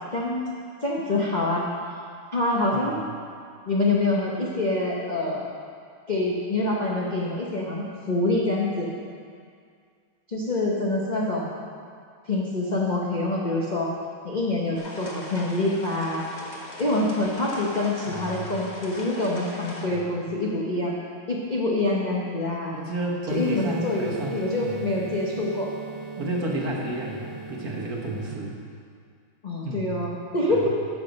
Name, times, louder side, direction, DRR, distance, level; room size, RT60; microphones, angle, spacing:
voice 1, 0.1-0.4 0.8-1.7 2.3-3.0 3.7-5.5 6.1-8.9 10.3-11.5 12.3-13.9 14.2-16.2 16.8-20.9 21.3-22.7 23.3-25.7 29.4-30.7, left 2 dB, 45° left, -4 dB, 0.6 m, -26 dB
sound 1, 14.8-19.9, left 1 dB, 25° left, 1.0 m, -40 dB
voice 2, 18.0-18.5 19.8-20.2 22.7-24.9 26.2-28.5 29.6-30.0 30.5-30.7, right 2 dB, 50° right, -2 dB, 1.5 m, -32 dB
sound 2, 23.3-28.3, right 3 dB, 30° right, 1.5 m, -37 dB
13.5 x 5.9 x 5.2 m, 2.2 s
omnidirectional pair, 2.4 m